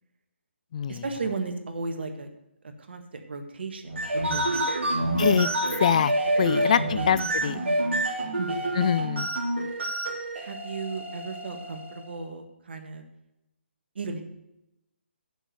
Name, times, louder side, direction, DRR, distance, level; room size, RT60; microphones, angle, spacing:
voice 1, 0.9-2.3 2.8-4.9 5.2-5.5 6.6-7.1 8.4-8.7 10.4-13.0 13.9-14.2, right 4 dB, 60° right, 5 dB, 1.6 m, -35 dB
sound 1, 3.8-12.1, right 1 dB, 75° right, 2.9 m, -28 dB
voice 2, 5.2-5.5 5.8-6.1 6.4-7.6 8.8-9.3, left 8 dB, 35° left, 17 dB, 0.3 m, -24 dB
7.4 x 7.1 x 7.9 m, 0.89 s
hypercardioid pair, 155°, 6 cm